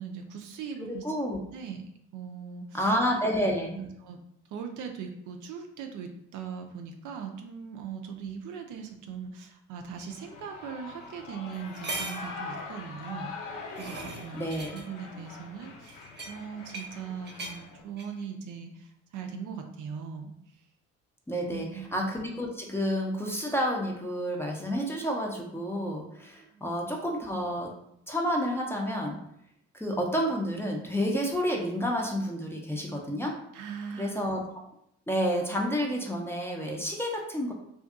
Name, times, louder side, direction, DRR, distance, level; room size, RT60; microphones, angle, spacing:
voice 1, 0.0-1.0 1.5-1.8 2.1-2.8 3.7-4.2 4.5-13.3 13.8-14.5 14.7-16.0 16.3-20.3 21.5-21.9 26.5-26.7 33.5-34.2, right 6 dB, 60° right, 4 dB, 0.5 m, -40 dB
voice 2, 0.8-1.4 2.7-3.8 14.3-14.8 21.3-27.7 28.1-29.2 29.7-33.4 33.9-34.4 35.1-37.5, equal, 5° left, -1 dB, 0.5 m, -30 dB
sound 1, 10.0-10.1 11.0-11.1 11.5-12.3 13.3-14.8 15.8-17.0 17.2-17.6 18.0-18.2, right 2 dB, 30° right, 0.8 m, -39 dB
Shout / Cheering, 10.1-17.8, left 4 dB, 60° left, 0.6 m, -43 dB
2.6 x 2.4 x 2.3 m, 0.74 s
hypercardioid pair, 50°, 36 cm